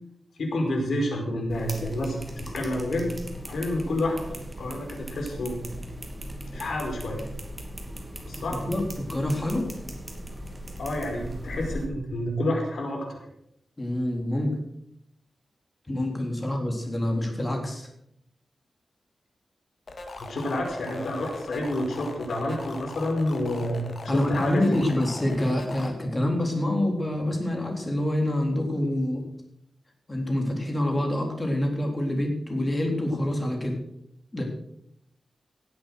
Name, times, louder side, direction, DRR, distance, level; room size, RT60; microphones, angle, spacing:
voice 1, 0.4-3.1 3.4-5.6 6.5-7.2 8.2-8.6 10.8-13.2 20.2-23.9 24.1-24.8, left 1 dB, 80° left, 1 dB, 5.0 m, -29 dB
sound 1, 1.5-11.8, equal, 10° right, 2.7 m, -38 dB
voice 2, 8.5-9.7 13.8-14.6 15.9-17.9 24.1-29.2 30.1-33.8 34.3-34.4, left 1 dB, 20° left, 2 dB, 3.8 m, -26 dB
sound 2, 19.9-25.9, left 3 dB, 55° left, 2.3 m, -40 dB
17.5 x 8.3 x 6.6 m, 0.76 s
wide cardioid pair, 110°, 0 cm